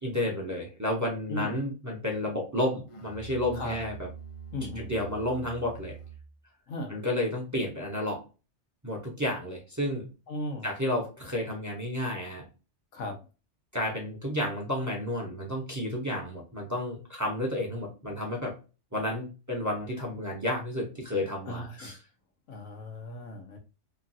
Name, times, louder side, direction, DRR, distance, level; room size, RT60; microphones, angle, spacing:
voice 1, 0.0-4.1 4.8-5.9 6.9-8.2 8.8-10.1 10.6-12.4 13.7-18.5 18.9-21.9, left 1 dB, 20° right, -1 dB, 0.7 m, -31 dB
Musical instrument, 2.9-6.4, right 7 dB, 45° left, 0.4 m, -44 dB
voice 2, 4.5-4.9 6.7-7.0 10.3-10.7 12.9-13.2 21.5-22.0 22.5-23.6, left 1 dB, 90° left, 4 dB, 1.2 m, -36 dB
3.1 x 2.3 x 2.6 m, 0.32 s
omnidirectional pair, 1.2 m